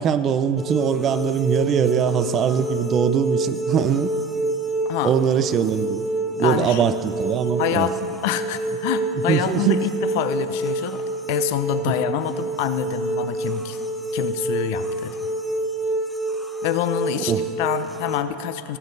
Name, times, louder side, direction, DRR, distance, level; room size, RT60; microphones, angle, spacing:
voice 1, 0.0-4.1 5.0-6.0 6.4-7.9 9.3-9.9 11.9-12.0 17.1-17.4, right 8 dB, 40° right, 13 dB, 0.5 m, -22 dB
sound 1, 0.6-18.2, right 2 dB, ahead, 0.9 m, -27 dB
voice 2, 6.4-6.8 7.6-11.0 11.3-13.8 14.1-15.2 16.6-18.8, left 11 dB, 65° left, 11 dB, 0.6 m, -26 dB
17.0 x 7.1 x 4.0 m, 2.6 s
hypercardioid pair, 100°, 0 cm